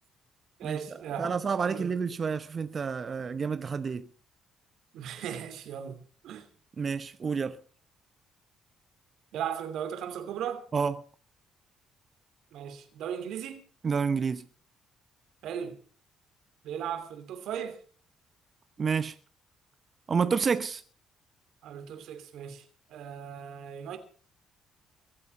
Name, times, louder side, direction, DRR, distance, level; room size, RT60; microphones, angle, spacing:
voice 1, 0.6-1.3 1.6-1.9 4.9-6.5 9.3-10.6 12.5-13.6 15.4-15.8 16.6-17.8 21.6-24.0, right 9 dB, 70° right, 2.8 m, -37 dB
voice 2, 1.2-4.1 6.8-7.6 10.7-10.9 13.8-14.4 18.8-19.2 20.1-20.8, right 5 dB, 45° right, 0.9 m, -29 dB
23.0 x 8.4 x 5.7 m
hypercardioid pair, 55°, 0 cm